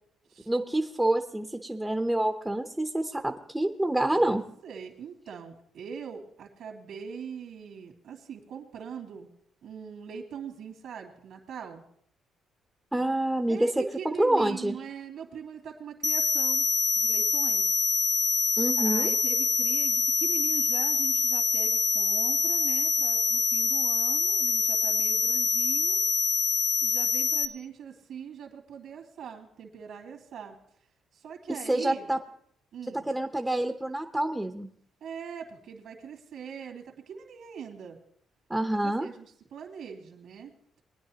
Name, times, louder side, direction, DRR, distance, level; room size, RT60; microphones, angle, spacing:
voice 1, 0.5-4.4 12.9-13.7 14.2-14.8 18.6-19.1 31.5-32.2 33.1-34.7 38.5-39.1, right 1 dB, 10° right, 5 dB, 0.8 m, -27 dB
voice 2, 4.1-9.3 9.6-11.8 13.5-16.7 17.0-17.7 18.8-26.0 26.8-30.6 31.1-32.1 32.7-33.0 35.0-38.0 38.7-40.5, right 7 dB, 75° right, 1 dB, 2.5 m, -42 dB
sound 1, 16.0-27.5, left 5 dB, 25° left, 0.6 m, -25 dB
21.0 x 10.0 x 2.9 m, 0.64 s
cardioid pair, 90°, 0 cm